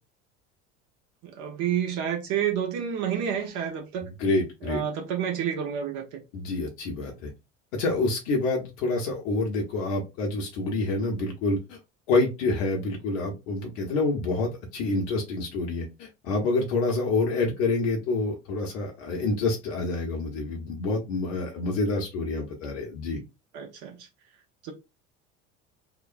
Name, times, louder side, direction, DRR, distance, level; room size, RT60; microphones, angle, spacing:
voice 1, 1.2-4.1 4.6-6.2 23.5-24.1 24.6-24.7, right 8 dB, 50° right, 0.9 m, -29 dB
voice 2, 4.0-4.8 6.3-7.3 7.7-11.8 12.1-23.2, left 3 dB, 60° left, 0.9 m, -27 dB
2.9 x 2.1 x 2.5 m
figure-of-eight pair, 65°, 38 cm